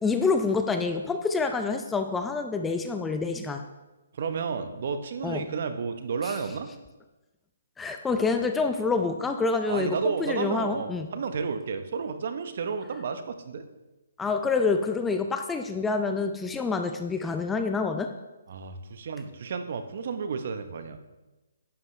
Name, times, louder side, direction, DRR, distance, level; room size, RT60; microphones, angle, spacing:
voice 1, 0.0-3.6 5.2-5.5 6.2-6.4 7.8-11.1 14.2-18.1, left 4 dB, 10° left, 6 dB, 0.5 m, -27 dB
voice 2, 4.1-6.7 9.7-13.6 18.5-21.0, right 5 dB, 55° right, 9 dB, 1.0 m, -32 dB
11.5 x 9.9 x 3.3 m, 1.1 s
hypercardioid pair, 150°, 0 cm